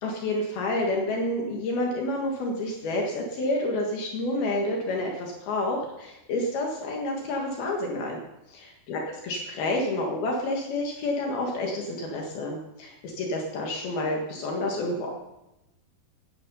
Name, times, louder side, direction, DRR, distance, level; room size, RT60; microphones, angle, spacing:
voice 1, 0.0-8.2 8.5-15.1, left 1 dB, 70° left, 0 dB, 3.6 m, -29 dB
19.0 x 9.7 x 5.6 m, 0.93 s
omnidirectional pair, 4.6 m